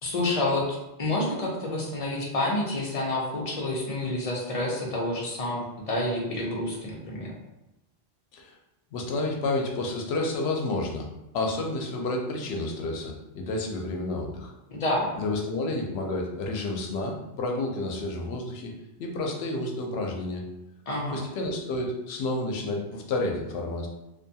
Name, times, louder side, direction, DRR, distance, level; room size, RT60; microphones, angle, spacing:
voice 1, 0.0-7.3 14.7-15.1 20.9-21.2, left 1 dB, 45° left, -2 dB, 0.5 m, -28 dB
voice 2, 8.9-11.1 11.3-14.5 15.1-18.7 19.0-20.4 21.1-23.9, left 2 dB, 80° left, 1 dB, 0.8 m, -30 dB
2.5 x 2.2 x 2.7 m, 0.94 s
omnidirectional pair, 1.1 m